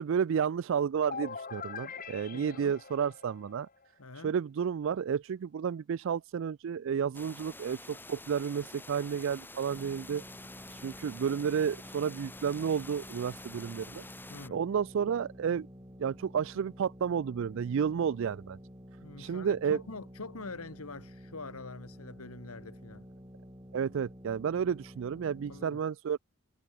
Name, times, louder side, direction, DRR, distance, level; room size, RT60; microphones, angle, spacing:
voice 1, 0.0-3.7 4.2-10.2 10.7-14.0 14.5-15.7 16.0-18.6 19.2-19.8 23.7-26.2, right 7 dB, 60° right, 0.3 m, -31 dB
sound 1, 1.1-3.9, left 5 dB, 40° left, 2.1 m, -43 dB
voice 2, 2.3-2.7 4.0-4.3 14.3-14.6 19.0-23.0 25.5-25.8, left 3 dB, 85° left, 2.3 m, -45 dB
sound 2, 7.1-14.5, left 2 dB, 10° left, 5.2 m, -48 dB
sound 3, 9.7-25.7, equal, 20° right, 7.6 m, -50 dB
head